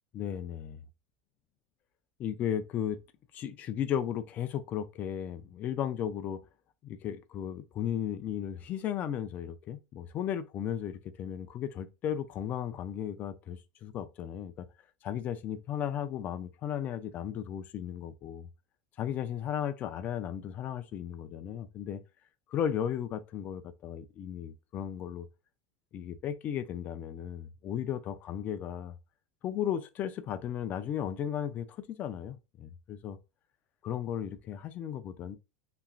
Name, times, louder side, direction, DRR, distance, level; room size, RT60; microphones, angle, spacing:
voice 1, 0.1-0.8 2.2-3.0 3.3-6.4 6.8-14.7 15.0-18.5 19.0-22.0 22.5-25.3 25.9-29.0 29.4-33.2 33.8-35.4, left 9 dB, 35° left, 0.3 m, -35 dB
3.0 x 2.4 x 2.3 m
supercardioid pair, 135°, 5 cm